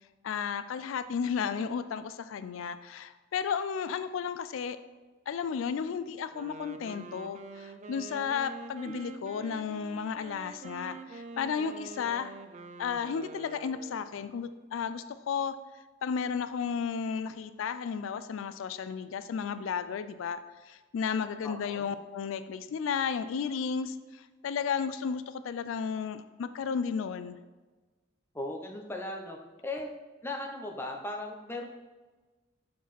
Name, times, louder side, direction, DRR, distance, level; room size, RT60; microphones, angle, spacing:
voice 1, 0.2-4.8 5.3-12.4 12.8-15.6 16.0-20.4 20.6-27.4, left 6 dB, 85° left, 12 dB, 0.3 m, -33 dB
Wind instrument woodwind instrument, 6.2-14.1, right 3 dB, 35° right, 0.4 m, -46 dB
voice 2, 21.4-21.9 28.3-29.4 29.6-29.9 30.2-31.7, left 2 dB, 10° left, 1 dB, 0.7 m, -37 dB
6.2 x 4.7 x 4.2 m, 1.3 s
head